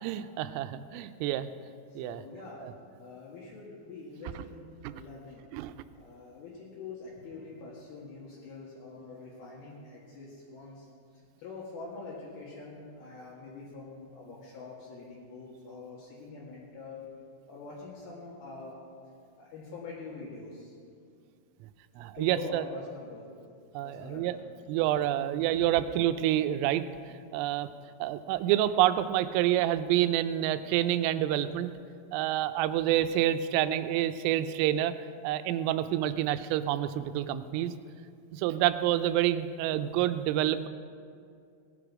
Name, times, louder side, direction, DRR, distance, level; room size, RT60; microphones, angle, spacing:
voice 1, 0.0-1.5 2.0-2.2 2.6-2.7 4.8-4.9 5.5-5.7 22.0-22.6 23.7-24.4 24.7-26.8 27.3-27.7 28.0-31.7 32.1-35.0 35.2-37.7 38.3-40.7, right 12 dB, 85° right, 11 dB, 3.1 m, -28 dB
voice 2, 1.9-2.6 3.0-4.6 4.9-5.4 5.9-10.9 11.4-17.1 17.5-18.8 19.4-20.7 22.1-23.2 23.8-24.5, left 3 dB, 60° left, -6 dB, 3.2 m, -45 dB
18.0 x 10.0 x 4.8 m, 2.3 s
omnidirectional pair, 5.9 m